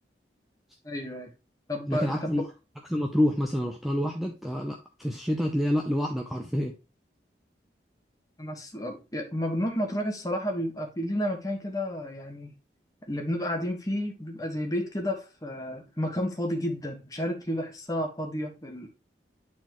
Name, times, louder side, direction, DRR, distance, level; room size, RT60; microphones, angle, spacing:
voice 1, 0.8-1.3 1.7-2.4 8.4-12.5 13.0-18.9, equal, 20° left, 1.4 m, -31 dB
voice 2, 1.9-2.4 2.9-6.7, equal, ahead, 0.6 m, -27 dB
9.2 x 4.2 x 3.0 m
head